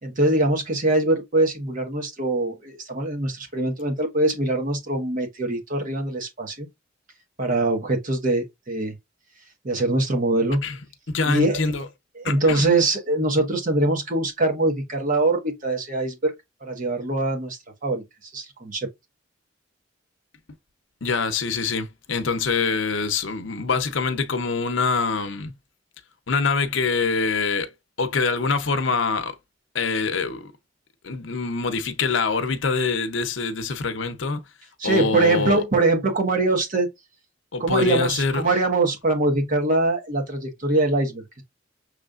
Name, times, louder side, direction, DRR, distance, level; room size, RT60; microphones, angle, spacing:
voice 1, 0.0-6.7 7.4-8.9 9.6-10.6 11.3-11.6 12.2-16.3 16.6-18.0 18.3-18.9 34.8-36.9 37.6-41.4, right 2 dB, 45° right, 1.2 m, -23 dB
voice 2, 11.1-11.9 12.2-12.7 21.0-25.5 26.3-27.7 28.0-29.4 29.7-30.5 31.0-34.4 34.8-35.6 37.5-38.4, left 4 dB, 75° left, 0.8 m, -24 dB
6.4 x 3.2 x 2.5 m
head